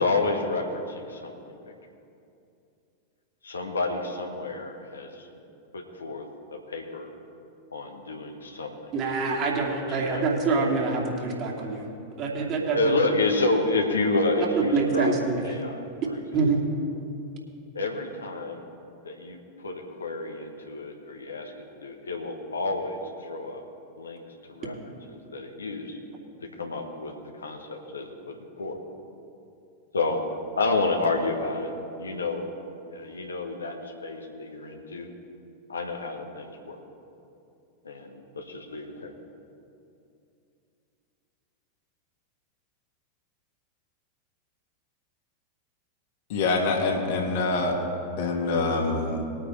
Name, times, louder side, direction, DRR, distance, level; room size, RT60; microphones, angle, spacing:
voice 1, 0.0-1.3 3.4-5.3 5.7-7.1 7.7-8.9 9.9-10.2 12.7-15.1 15.4-16.2 17.7-18.6 19.0-21.5 21.8-23.6 24.0-24.2 24.5-24.7 25.1-26.0 26.4-28.8 29.9-30.2 30.6-31.7 32.0-32.4 32.9-35.1 35.7-36.8 37.8-39.1, left 2 dB, 75° left, 2 dB, 1.4 m, -29 dB
voice 2, 8.9-11.9 12.2-12.9 14.4-15.5 16.3-16.6, right 4 dB, 35° right, -3 dB, 2.8 m, -26 dB
voice 3, 46.3-47.8 48.2-49.2, left 3 dB, 55° left, 1 dB, 2.0 m, -25 dB
21.0 x 9.0 x 3.4 m, 2.6 s
figure-of-eight pair, 90°, 0 cm